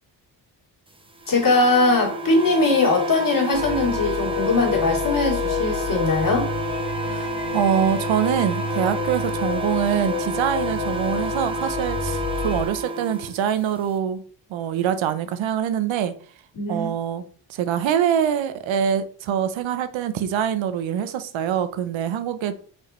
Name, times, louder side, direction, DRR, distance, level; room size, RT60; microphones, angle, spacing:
sound 1, 1.2-13.3, right 2 dB, 10° right, 1.0 m, -30 dB
voice 1, 1.3-6.5 16.5-16.9, left 3 dB, 45° left, 2.7 m, -20 dB
sound 2, 3.5-12.6, left 6 dB, 65° left, 1.6 m, -29 dB
voice 2, 7.1-14.2 14.5-16.1 16.7-17.2 17.5-22.5, right 9 dB, 85° right, 0.8 m, -24 dB
5.2 x 4.7 x 4.2 m
cardioid pair, 85°, 45 cm